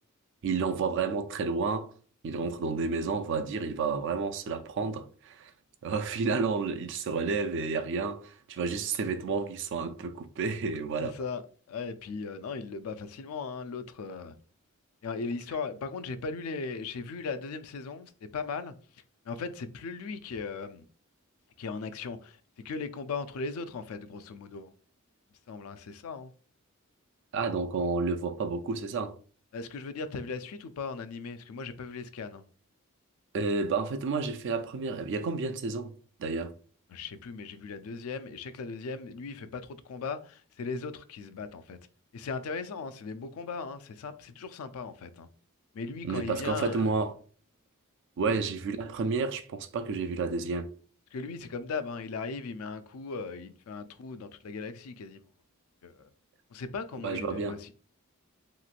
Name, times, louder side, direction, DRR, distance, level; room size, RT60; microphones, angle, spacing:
voice 1, 0.4-1.9 2.2-5.5 5.8-11.1 27.3-29.1 33.3-35.9 36.2-36.5 46.0-47.1 48.2-50.7 57.0-57.6, right 4 dB, 60° right, 0.4 m, -30 dB
voice 2, 11.0-11.4 11.7-14.3 15.0-18.7 19.3-20.9 21.6-22.4 22.6-24.7 25.5-26.3 29.5-32.4 36.9-41.8 42.1-45.3 45.7-46.9 48.3-48.4 51.1-55.2 55.8-56.1 56.5-57.7, left 4 dB, 85° left, 0.4 m, -38 dB
3.0 x 3.0 x 2.4 m
head